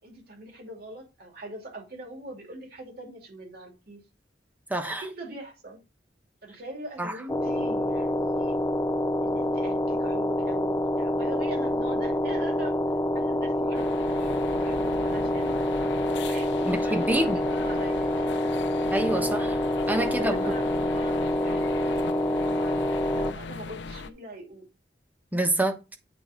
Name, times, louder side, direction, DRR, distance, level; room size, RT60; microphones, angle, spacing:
voice 1, 0.0-4.0 4.8-5.8 6.4-8.6 9.2-12.7 13.1-15.6 16.3-18.5 19.7-24.7, right 1 dB, 55° right, 2.8 m, -42 dB
voice 2, 4.7-5.0 7.0-7.1 16.6-17.4 18.9-19.6 19.9-20.5 25.3-25.8, right 1 dB, 10° right, 1.1 m, -26 dB
sound 1, 7.3-23.3, left 1 dB, 15° left, 0.5 m, -27 dB
sound 2, 13.7-24.1, left 4 dB, 70° left, 0.6 m, -39 dB
9.0 x 3.9 x 5.1 m
head